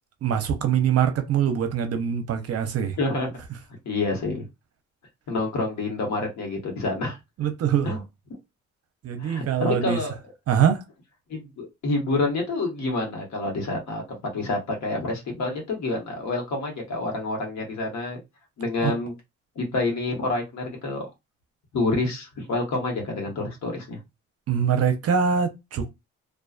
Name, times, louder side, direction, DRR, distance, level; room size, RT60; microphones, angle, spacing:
voice 1, 0.2-3.0 7.4-8.0 9.0-10.0 10.5-10.8 18.8-18.9 24.5-25.9, right 8 dB, 55° right, 0.6 m, -23 dB
voice 2, 3.0-3.3 3.8-4.5 5.3-7.2 7.8-8.0 9.2-10.1 11.3-18.2 18.6-19.1 19.6-21.1 21.7-24.0, left 2 dB, 65° left, 1.2 m, -28 dB
2.4 x 2.3 x 2.4 m
cardioid pair, 90°, 30 cm